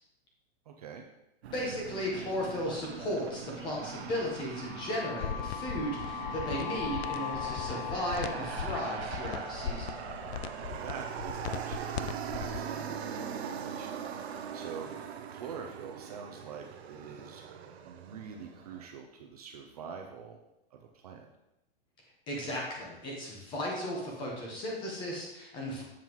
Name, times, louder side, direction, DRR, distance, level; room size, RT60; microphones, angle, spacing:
voice 1, 0.7-1.0 10.7-14.9 15.3-17.4 17.8-20.4 20.7-21.3, right 6 dB, 40° right, 3 dB, 0.5 m, -45 dB
Aircraft, 1.4-18.9, right 7 dB, 90° right, 0.7 m, -41 dB
voice 2, 1.5-9.9 22.3-25.8, equal, 15° left, -2 dB, 1.1 m, -35 dB
sound 1, 4.4-12.3, left 11 dB, 50° left, 1.1 m, -42 dB
sound 2, 5.2-12.6, left 9 dB, 90° left, 0.5 m, -39 dB
7.3 x 5.5 x 3.0 m, 0.90 s
hypercardioid pair, 170°, 31 cm